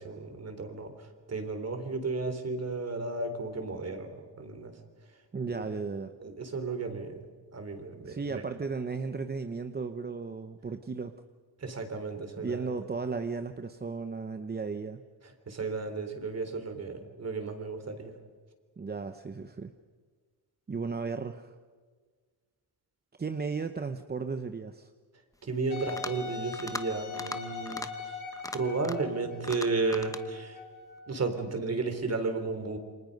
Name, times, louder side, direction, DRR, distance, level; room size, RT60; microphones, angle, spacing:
voice 1, 0.0-4.8 5.5-5.6 6.2-8.4 11.6-12.8 15.2-18.2 25.4-28.2 28.5-30.6 31.1-32.8, right 3 dB, 40° right, 7 dB, 3.8 m, -34 dB
voice 2, 5.3-6.1 8.0-11.2 12.4-15.0 18.8-19.7 20.7-21.6 23.2-24.9, right 4 dB, 25° right, 8 dB, 0.9 m, -35 dB
Wind instrument woodwind instrument, 25.7-31.3, left 5 dB, 50° left, 6.4 m, -42 dB
sound 1, 25.8-26.2 26.5-26.8 27.1-27.4 27.7-27.9 28.3-29.1 29.4-30.2, left 2 dB, 10° left, 1.0 m, -39 dB
29.0 x 25.5 x 5.4 m, 1.6 s
wide cardioid pair, 135°, 39 cm